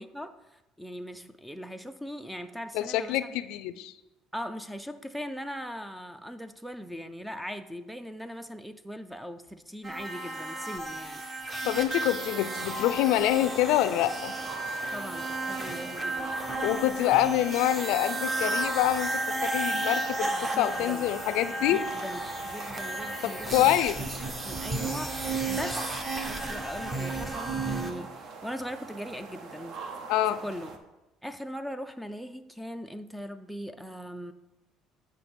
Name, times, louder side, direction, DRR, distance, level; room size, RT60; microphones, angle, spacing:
voice 1, 0.0-3.2 4.3-11.2 14.9-16.4 20.5-21.1 21.7-23.7 24.2-29.8 30.3-30.7 31.2-34.3, equal, ahead, 10 dB, 0.3 m, -40 dB
voice 2, 2.7-3.9 11.6-14.3 16.6-19.1 19.4-21.8 23.2-24.0 30.1-30.4, left 13 dB, 80° left, 12 dB, 0.4 m, -26 dB
sound 1, 9.8-27.9, right 2 dB, 20° right, 0.8 m, -33 dB
sound 2, 12.2-30.8, right 4 dB, 55° right, 0.9 m, -43 dB
8.2 x 5.3 x 4.4 m, 1.0 s
cardioid pair, 135°, 0 cm